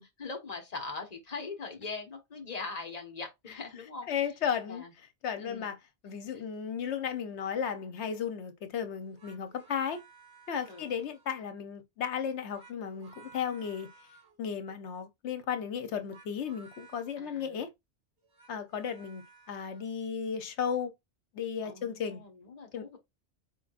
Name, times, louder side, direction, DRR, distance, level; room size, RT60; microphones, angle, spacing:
voice 1, 0.2-4.1 4.7-4.9 5.4-5.7 6.3-6.4 10.7-10.9 17.2-17.6 21.6-23.0, left 4 dB, 35° left, 1.4 m, -41 dB
voice 2, 4.1-4.8 5.2-5.8 6.0-10.0 10.5-13.9 14.4-17.7 18.5-20.9 21.3-22.2 22.7-23.0, left 7 dB, 85° left, 1.1 m, -34 dB
sound 1, 9.0-11.5 12.3-14.4 16.0-17.1 18.2-19.9, right 4 dB, 70° right, 1.5 m, -57 dB
4.5 x 3.7 x 2.5 m
omnidirectional pair, 1.1 m